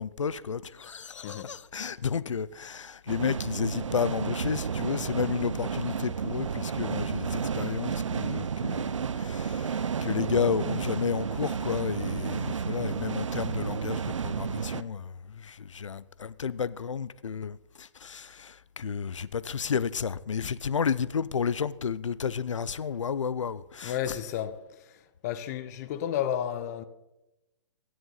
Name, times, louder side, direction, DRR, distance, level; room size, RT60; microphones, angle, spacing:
voice 1, 0.0-24.2, left 6 dB, 90° left, 0.5 m, -32 dB
sound 1, 3.1-14.8, right 6 dB, 85° right, 0.5 m, -32 dB
voice 2, 23.8-24.6 25.2-26.8, left 10 dB, 35° left, 0.7 m, -31 dB
16.5 x 7.8 x 4.0 m
hypercardioid pair, 145°, 16 cm